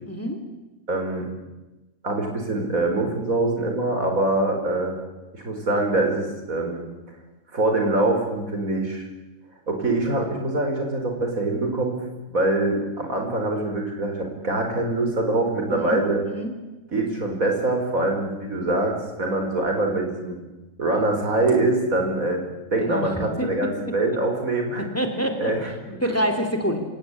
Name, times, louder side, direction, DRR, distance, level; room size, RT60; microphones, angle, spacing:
voice 1, 0.1-0.4 15.7-16.0 16.3-16.5 22.8-23.7 24.8-25.5 26.0-26.8, equal, 10° left, 6 dB, 2.9 m, -26 dB
voice 2, 0.9-1.3 2.0-5.0 5.3-6.8 7.5-9.1 9.7-12.0 12.3-16.2 16.9-20.4 20.8-22.4 22.7-24.8 25.4-26.0, right 2 dB, 80° right, 2 dB, 5.2 m, -24 dB
26.5 x 17.0 x 10.0 m, 1.1 s
omnidirectional pair, 1.4 m